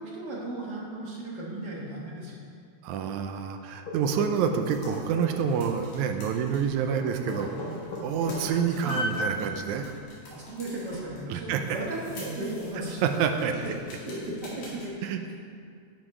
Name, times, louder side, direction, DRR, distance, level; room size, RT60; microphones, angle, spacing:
voice 1, 0.0-2.3 8.7-9.2 10.3-13.1 13.5-13.7 14.0-15.1, right 2 dB, 50° right, -4 dB, 1.4 m, -36 dB
voice 2, 2.8-7.5 8.0-9.9 11.3-11.8 13.0-13.7 15.0-15.2, right 7 dB, 80° right, 6 dB, 1.9 m, -28 dB
sound 1, 3.8-5.3 6.9-8.4, left 2 dB, 55° left, 1.7 m, -36 dB
sound 2, 4.4-14.9, left 1 dB, 70° left, 3.3 m, -41 dB
11.0 x 5.2 x 4.8 m, 2.3 s
omnidirectional pair, 3.4 m